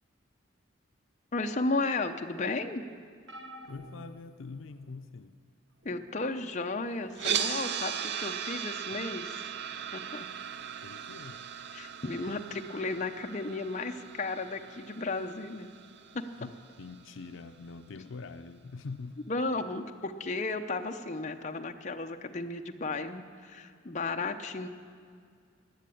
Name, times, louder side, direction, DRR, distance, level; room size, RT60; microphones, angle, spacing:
voice 1, 1.3-2.8 5.8-9.4 9.9-10.3 11.7-15.7 16.1-16.2 19.3-24.7, left 3 dB, 35° left, 5 dB, 0.7 m, -34 dB
sound 1, 3.3-5.1 5.8-6.1 7.4-7.5, right 1 dB, 80° right, 1.5 m, -49 dB
voice 2, 3.7-5.4 10.8-11.4 16.4-19.2, left 4 dB, 80° left, 9 dB, 0.5 m, -44 dB
sound 2, 7.1-17.3, right 8 dB, 60° right, 0.6 m, -38 dB
15.5 x 10.0 x 8.6 m, 2.2 s
head